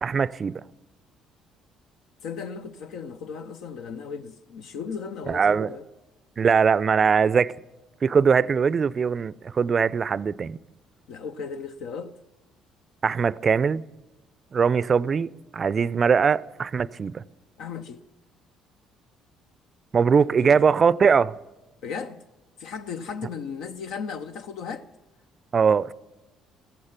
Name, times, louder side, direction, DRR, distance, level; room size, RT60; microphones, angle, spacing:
voice 1, 0.0-0.6 5.3-5.7 6.4-7.5 8.0-10.6 13.0-13.8 14.5-17.2 19.9-21.4 25.5-25.9, right 6 dB, 40° right, 0.4 m, -21 dB
voice 2, 2.2-5.8 11.1-12.1 17.6-18.0 20.3-20.7 21.8-22.2 22.6-24.9, left 6 dB, 70° left, 0.7 m, -36 dB
15.5 x 14.5 x 5.8 m
hypercardioid pair, 55°, 0 cm